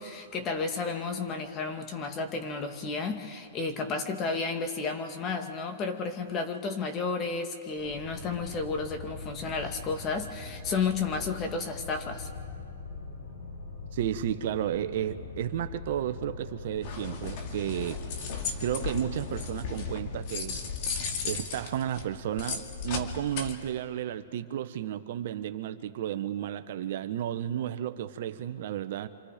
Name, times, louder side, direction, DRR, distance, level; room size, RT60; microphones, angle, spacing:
voice 1, 0.0-12.3, left 4 dB, 25° left, 5 dB, 2.1 m, -32 dB
sound 1, 7.8-21.4, left 4 dB, 75° left, 5.1 m, -42 dB
voice 2, 13.9-18.0 18.6-20.7 21.2-29.1, right 11 dB, 55° right, 10 dB, 1.1 m, -32 dB
sound 2, 16.8-23.5, left 5 dB, 45° left, 2.4 m, -36 dB
30.0 x 26.5 x 5.1 m, 2.6 s
hypercardioid pair, 140°, 0 cm